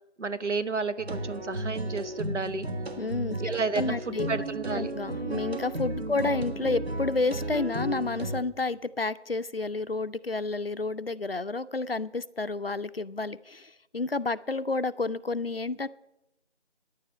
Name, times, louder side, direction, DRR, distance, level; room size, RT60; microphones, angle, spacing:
voice 1, 0.2-2.7 3.4-4.9 6.0-6.2, right 4 dB, 80° right, 12 dB, 1.0 m, -31 dB
sound 1, 1.0-8.4, right 1 dB, 60° right, 1.4 m, -34 dB
voice 2, 3.0-4.3 4.7-15.9, left 3 dB, 55° left, 16 dB, 0.5 m, -30 dB
10.0 x 7.5 x 9.5 m, 0.94 s
figure-of-eight pair, 175°, 35 cm